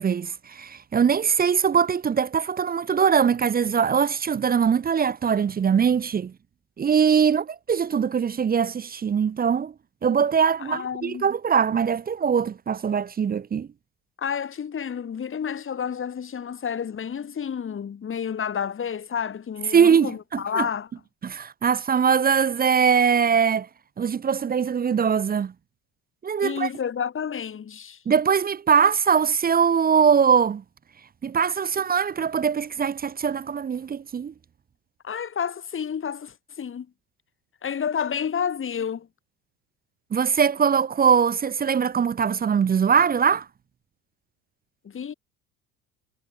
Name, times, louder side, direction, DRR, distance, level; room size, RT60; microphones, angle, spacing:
voice 1, 0.0-6.3 6.8-9.7 10.0-13.7 19.7-20.7 21.2-23.7 24.0-25.5 26.2-26.7 28.1-30.6 31.2-34.3 40.1-43.5, right 7 dB, 20° right, 0.8 m, -22 dB
voice 2, 10.6-11.3 14.2-20.9 26.4-28.0 35.0-36.9 37.6-39.1 44.8-45.1, left 7 dB, 30° left, 2.7 m, -30 dB
figure-of-eight pair, 65°, 42 cm